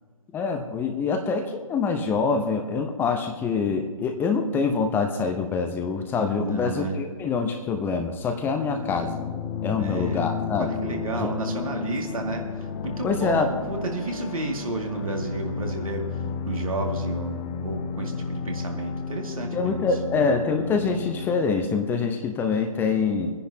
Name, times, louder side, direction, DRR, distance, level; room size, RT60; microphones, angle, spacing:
voice 1, 0.3-9.1 9.6-10.7 11.2-11.3 13.0-13.5 19.5-23.5, left 5 dB, 10° left, 5 dB, 0.8 m, -25 dB
voice 2, 6.4-7.0 9.8-10.3 10.6-12.4 12.8-16.1 16.4-19.9, right 3 dB, 70° right, 1 dB, 2.5 m, -31 dB
sound 1, 8.4-21.5, left 6 dB, 30° left, 0.9 m, -32 dB
25.0 x 10.5 x 2.9 m, 1.4 s
figure-of-eight pair, 135°, 18 cm